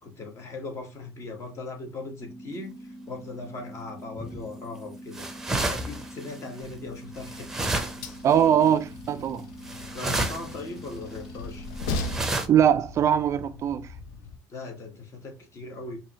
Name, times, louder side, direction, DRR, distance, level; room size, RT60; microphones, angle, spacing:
voice 1, 0.0-5.3 5.6-7.5 9.9-11.7 14.5-16.0, left 3 dB, 40° left, 1.3 m, -39 dB
sound 1, 2.2-12.2, right 1 dB, 10° left, 1.3 m, -44 dB
sound 2, 4.2-4.5 5.1-6.6 7.2-8.3 8.6-8.7 9.6-10.6 10.8-10.9 11.8-12.5, right 2 dB, 5° right, 0.7 m, -31 dB
Train, 6.6-14.4, left 2 dB, 80° left, 0.7 m, -39 dB
voice 2, 8.2-9.5 12.5-13.9, right 9 dB, 40° right, 0.3 m, -21 dB
4.7 x 2.7 x 2.9 m
cardioid pair, 130°, 7 cm